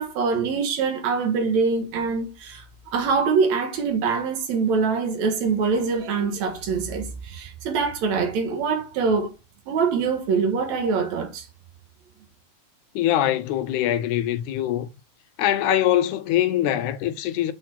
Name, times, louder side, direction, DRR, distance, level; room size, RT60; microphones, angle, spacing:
voice 1, 0.0-2.6 2.9-9.3 9.7-11.5, right 5 dB, 70° right, 2.4 m, -24 dB
voice 2, 13.0-14.9 15.4-17.5, left 12 dB, 90° left, 2.1 m, -23 dB
6.6 x 3.7 x 4.3 m
omnidirectional pair, 3.4 m